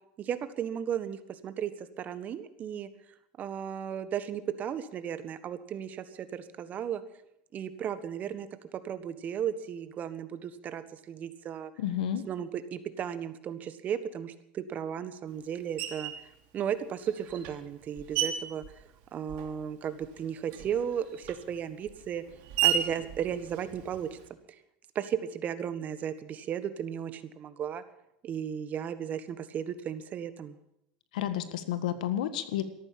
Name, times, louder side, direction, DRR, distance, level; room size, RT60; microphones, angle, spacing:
voice 1, 0.2-2.9 3.4-7.0 7.5-8.5 8.8-11.7 12.3-16.1 16.5-18.6 19.1-22.2 22.6-24.1 24.9-27.8 28.2-30.6, right 9 dB, 40° right, 12 dB, 1.5 m, -35 dB
voice 2, 11.8-12.2 31.1-32.6, left 11 dB, 80° left, 11 dB, 1.6 m, -31 dB
Screech, 15.8-16.3 17.0-19.7 20.0-24.3, right 10 dB, 65° right, 3.0 m, -34 dB
14.0 x 12.0 x 8.5 m, 0.81 s
supercardioid pair, 100°, 4 cm